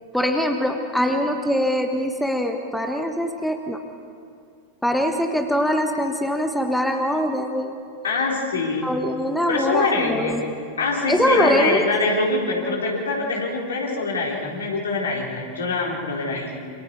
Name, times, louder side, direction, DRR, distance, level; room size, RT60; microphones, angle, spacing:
voice 1, 0.1-3.8 4.8-7.8 8.8-10.4 11.1-11.8, equal, ahead, 5 dB, 1.5 m, -23 dB
voice 2, 8.0-8.9 9.5-10.3 10.8-16.5, left 3 dB, 70° left, -2 dB, 4.3 m, -24 dB
27.0 x 27.0 x 4.7 m, 2.4 s
figure-of-eight pair, 90°, 0 cm